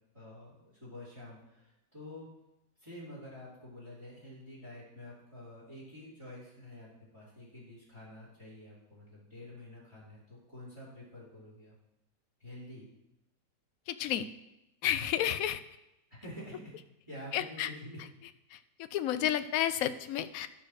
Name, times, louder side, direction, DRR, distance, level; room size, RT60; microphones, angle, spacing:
voice 1, 0.1-2.3 2.8-6.9 7.1-11.7 12.4-12.8 16.1-16.7 17.1-18.0, left 1 dB, 15° right, -6 dB, 3.0 m, -48 dB
voice 2, 13.9-14.3 14.8-15.6 17.3-17.7 18.5-20.5, left 11 dB, 70° left, 12 dB, 0.9 m, -31 dB
12.0 x 4.4 x 6.3 m, 0.90 s
omnidirectional pair, 1.8 m